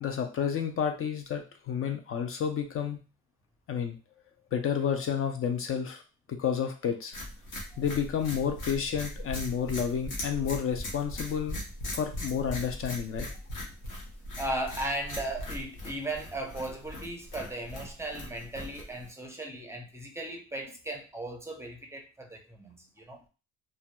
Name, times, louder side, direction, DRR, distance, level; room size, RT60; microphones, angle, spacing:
voice 1, 0.0-3.0 3.7-4.0 4.5-6.0 6.3-7.1 7.8-11.6 11.9-13.3, left 7 dB, 45° left, 0.4 m, -30 dB
sound 1, 7.1-19.1, left 1 dB, 85° left, 0.9 m, -39 dB
voice 2, 14.4-23.2, right 1 dB, 10° right, 0.5 m, -37 dB
2.6 x 2.2 x 2.2 m
cardioid pair, 90°, 30 cm